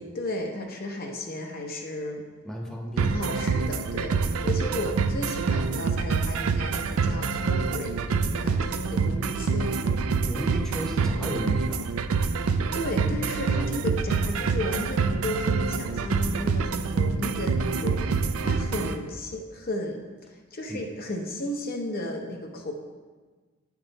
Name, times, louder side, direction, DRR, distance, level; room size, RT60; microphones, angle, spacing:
voice 1, 0.0-2.2 3.0-9.8 12.7-20.0 20.3-22.7, left 1 dB, 45° left, 1 dB, 0.6 m, -34 dB
voice 2, 2.4-3.2 10.3-11.9 20.7-20.8, equal, 5° left, -1 dB, 0.9 m, -34 dB
sound 1, 3.0-18.9, right 5 dB, 80° right, 0.4 m, -26 dB
9.5 x 3.6 x 4.0 m, 1.4 s
head